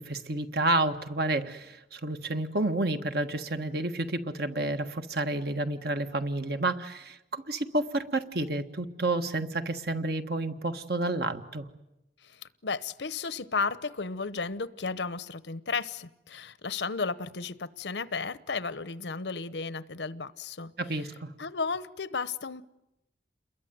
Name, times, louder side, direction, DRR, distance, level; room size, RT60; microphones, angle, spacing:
voice 1, 0.0-11.7 20.8-21.3, right 2 dB, 60° right, 1.6 m, -30 dB
voice 2, 12.2-20.7 21.4-22.6, left 4 dB, 75° left, 0.9 m, -34 dB
29.0 x 22.0 x 9.4 m
head